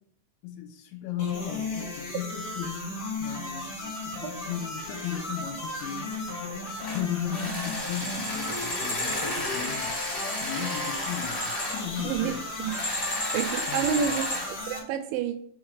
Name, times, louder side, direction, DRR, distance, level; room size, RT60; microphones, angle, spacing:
voice 1, 0.4-6.1 6.8-12.5 13.7-14.3, left 9 dB, 85° left, 6 dB, 3.0 m, -36 dB
sound 1, 1.2-14.8, left 2 dB, 60° left, 1.4 m, -36 dB
sound 2, 1.3-14.8, left 1 dB, 15° right, 0.5 m, -45 dB
sound 3, 6.8-7.0 7.3-11.8 12.7-14.5, left 1 dB, 20° left, 1.1 m, -32 dB
voice 2, 13.3-14.2 14.7-15.4, right 8 dB, 85° right, 7 dB, 2.8 m, -28 dB
6.4 x 3.9 x 4.7 m, 0.63 s
omnidirectional pair, 5.5 m